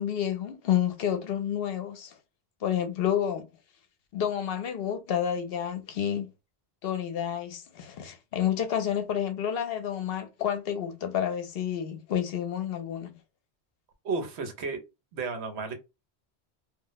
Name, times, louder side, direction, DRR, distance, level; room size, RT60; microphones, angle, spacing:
voice 1, 0.0-2.1 2.6-3.5 4.1-6.3 6.8-13.1, left 9 dB, 65° left, 0.8 m, -29 dB
voice 2, 14.0-14.8 15.1-15.7, right 4 dB, 80° right, 1.0 m, -32 dB
2.4 x 2.0 x 3.8 m
omnidirectional pair, 1.1 m